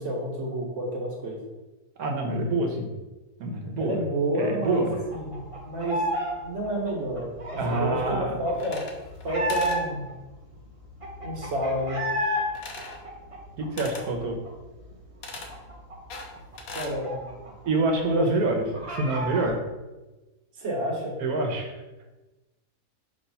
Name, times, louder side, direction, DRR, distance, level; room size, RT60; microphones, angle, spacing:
voice 1, 0.0-1.4 3.8-5.4 5.6-6.0 6.4-8.9 9.2-10.0 11.2-12.0 16.7-17.5 18.0-18.6 20.6-21.1, right 1 dB, 55° right, -1 dB, 1.8 m, -30 dB
voice 2, 2.0-2.9 3.4-3.9 4.4-4.9 7.6-8.4 13.6-14.4 17.6-18.6 18.9-19.6 21.2-21.7, right 2 dB, 80° right, 2 dB, 1.5 m, -26 dB
sound 1, 4.7-6.3 6.6-10.1 10.5-10.6 10.8-12.4 12.8-14.5 14.8-14.9 15.2-17.7 17.9-18.0 18.4-19.5, equal, 25° right, 1.0 m, -32 dB
sound 2, 8.5-9.2 9.5-9.8 12.6-13.0 13.8-14.1 15.2-15.5 16.1-17.0, left 3 dB, 70° left, 1.3 m, -39 dB
6.0 x 3.3 x 5.5 m, 1.1 s
omnidirectional pair, 1.6 m